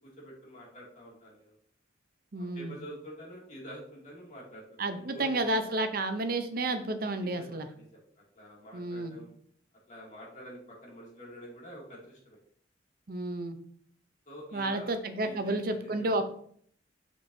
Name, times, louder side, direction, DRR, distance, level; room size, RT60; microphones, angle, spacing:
voice 1, 0.2-1.5 2.4-4.6 4.9-5.4 7.2-8.0 8.3-9.3 9.9-12.4 14.3-16.1, equal, 40° left, -4 dB, 2.3 m, -47 dB
voice 2, 2.3-2.8 4.8-7.7 8.7-9.2 13.1-13.6 14.5-16.2, right 2 dB, 50° right, 8 dB, 0.6 m, -31 dB
6.2 x 6.1 x 2.7 m, 0.62 s
head